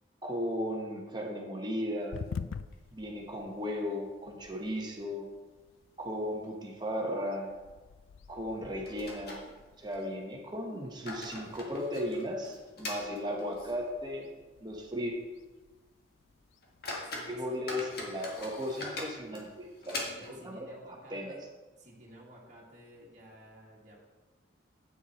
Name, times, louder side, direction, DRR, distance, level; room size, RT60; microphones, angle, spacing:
voice 1, 0.2-2.2 2.9-5.3 6.0-7.5 8.3-9.4 9.8-14.3 14.6-15.1 17.3-20.0 20.3-20.7 21.1-21.3, equal, 20° right, 0 dB, 1.2 m, -36 dB
sound 1, 2.1-20.0, left 5 dB, 85° left, 0.4 m, -50 dB
sound 2, 2.1-3.1 3.4-3.5 3.9-4.0 4.6-5.1 5.4-5.5 6.1-6.3 6.6-6.8 8.1-8.2 8.9-10.1 10.7-13.9 14.2-14.3 14.9-15.0 15.4-15.6 16.1-16.2 16.6-20.5, left 2 dB, 50° left, 1.7 m, -42 dB
voice 2, 11.3-11.7 17.0-17.5 20.0-21.4 21.8-24.0, right 1 dB, 40° right, -4 dB, 1.8 m, -54 dB
8.7 x 6.9 x 4.3 m, 1.3 s
head